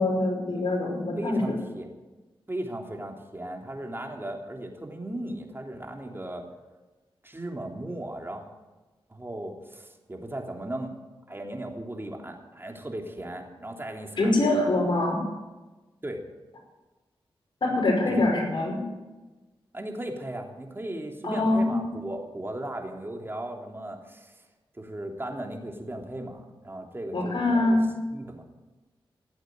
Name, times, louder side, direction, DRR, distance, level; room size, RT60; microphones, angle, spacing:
voice 1, 0.0-1.4 14.2-15.2 17.6-18.8 21.2-21.9 27.1-27.8, left 2 dB, 60° left, 0 dB, 5.3 m, -24 dB
voice 2, 1.2-1.9 2.5-6.4 7.2-8.4 9.1-10.9 11.3-14.7 16.0-16.2 18.1-18.2 19.7-24.4 24.7-27.8 28.1-28.4, right 1 dB, 25° right, 2 dB, 3.2 m, -37 dB
17.5 x 7.9 x 9.5 m, 1.2 s
cardioid pair, 55°, 9 cm